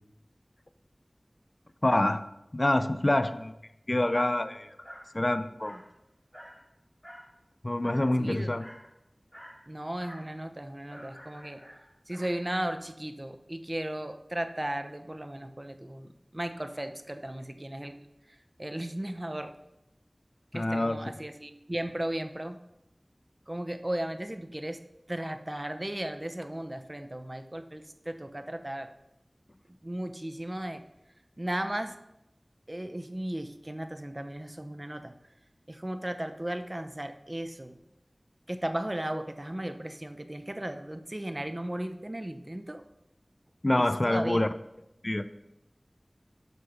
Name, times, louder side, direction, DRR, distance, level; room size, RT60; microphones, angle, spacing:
voice 1, 1.8-2.2 2.5-3.5 3.9-4.7 5.1-5.8 7.6-8.6 20.5-21.0 43.6-44.5 45.0-45.3, left 1 dB, 45° left, 12 dB, 0.5 m, -26 dB
Dog, 4.8-5.1 5.6-5.9 6.3-6.6 7.0-7.3 7.8-8.1 8.6-8.9 9.3-9.6 10.0-10.3 10.9-12.4, equal, 10° left, 3.4 m, -48 dB
voice 2, 8.2-8.5 9.7-11.6 12.1-18.0 18.3-19.5 20.5-22.6 23.5-24.8 25.1-28.9 29.8-30.8 31.4-31.9 32.7-35.1 35.7-37.8 38.5-42.8 43.8-44.4, right 1 dB, 35° right, 8 dB, 0.7 m, -36 dB
8.2 x 5.3 x 5.9 m, 0.88 s
wide cardioid pair, 40°, 0 cm